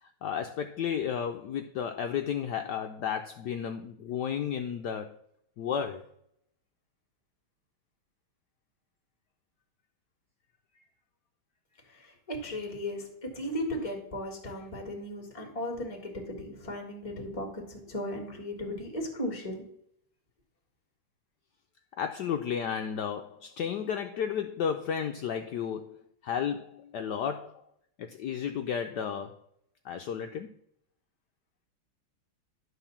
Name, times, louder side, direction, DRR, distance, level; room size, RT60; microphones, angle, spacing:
voice 1, 0.0-5.1 5.6-6.0 22.0-27.6 28.0-29.4 29.8-30.5, left 8 dB, 70° left, 1.0 m, -33 dB
voice 2, 11.8-19.6, left 1 dB, 15° left, 1.9 m, -36 dB
11.0 x 3.9 x 7.0 m
omnidirectional pair, 2.3 m